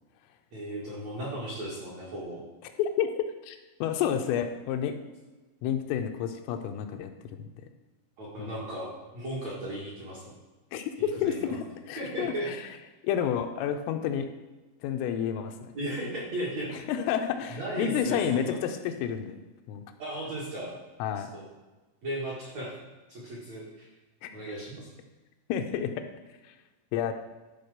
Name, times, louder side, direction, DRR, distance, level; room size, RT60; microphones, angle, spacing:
voice 1, 0.5-2.4 8.2-10.3 11.0-11.6 12.0-12.5 15.7-16.7 17.5-18.6 20.0-20.7 21.3-21.4 22.0-22.8 23.1-23.9 24.3-24.9, right 1 dB, 55° right, -6 dB, 2.0 m, -36 dB
voice 2, 2.8-5.0 5.6-7.5 8.4-8.5 10.7-11.6 11.9-12.8 13.0-14.3 14.8-15.7 16.7-19.4 19.7-19.8 21.0-21.3 24.2-24.3 25.5-26.0 26.4-26.5 26.9-27.1, left 8 dB, 80° left, 5 dB, 3.2 m, -30 dB
12.0 x 5.0 x 6.6 m, 1.2 s
omnidirectional pair, 6.0 m